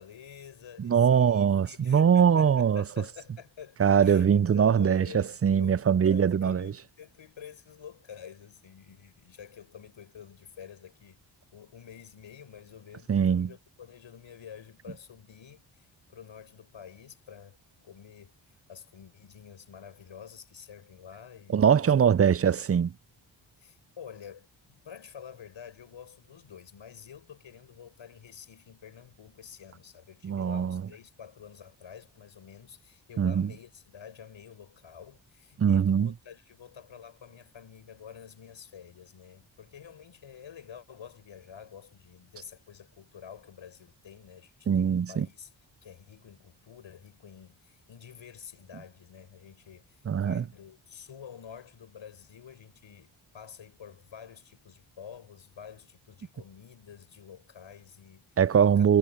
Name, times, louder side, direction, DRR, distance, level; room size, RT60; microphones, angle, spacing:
voice 1, 0.0-11.2 11.5-22.2 23.6-45.5 45.8-58.3 58.8-58.9, left 8 dB, 70° left, 6.2 m, -48 dB
voice 2, 0.8-2.8 3.8-6.7 13.1-13.5 21.5-22.9 30.2-30.8 33.2-33.5 35.6-36.1 44.7-45.3 50.1-50.4 58.4-59.0, right 7 dB, 30° right, 0.5 m, -22 dB
supercardioid pair, 45°, 49 cm